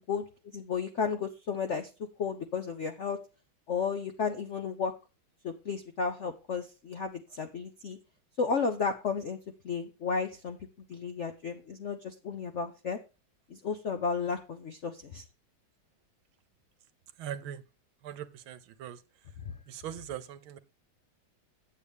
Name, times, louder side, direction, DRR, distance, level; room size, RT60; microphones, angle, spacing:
voice 1, 0.5-1.9 2.2-3.2 3.7-4.9 5.4-8.0 8.4-9.4 9.6-10.6 10.9-13.0 13.5-15.2, left 5 dB, 70° left, 0.7 m, -33 dB
voice 2, 17.2-17.6 18.0-19.0 19.7-20.6, right 10 dB, 80° right, 1.6 m, -40 dB
8.3 x 8.1 x 3.5 m
omnidirectional pair, 2.2 m